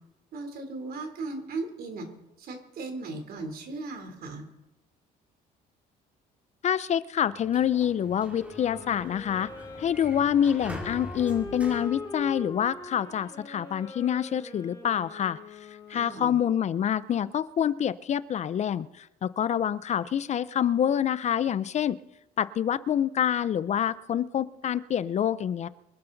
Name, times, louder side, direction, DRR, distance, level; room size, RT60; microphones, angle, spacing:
voice 1, 0.3-2.1 2.4-4.5 15.9-16.3, right 3 dB, 60° right, 5 dB, 3.3 m, -37 dB
voice 2, 6.6-9.5 9.8-22.0 22.4-25.7, left 9 dB, 40° left, 17 dB, 0.5 m, -27 dB
Sliding door, 7.2-12.9, left 1 dB, 10° right, 2.9 m, -44 dB
Wind instrument woodwind instrument, 8.3-16.7, left 3 dB, 25° left, 4.3 m, -42 dB
24.5 x 11.5 x 4.0 m, 0.96 s
cardioid pair, 110°, 17 cm